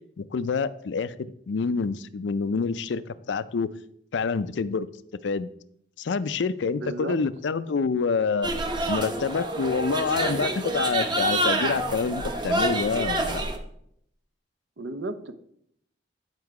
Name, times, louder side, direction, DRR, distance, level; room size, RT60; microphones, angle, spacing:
voice 1, 0.2-3.0 3.3-3.7 4.1-4.9 5.2-5.5 6.0-8.5 8.9-13.4, left 5 dB, 80° left, 15 dB, 0.4 m, -27 dB
voice 2, 6.7-7.2 7.9-8.0 14.8-15.3, right 2 dB, 90° right, 10 dB, 0.7 m, -33 dB
sound 1, 8.4-13.6, right 1 dB, 25° right, 0.8 m, -27 dB
9.7 x 4.6 x 4.7 m, 0.70 s
head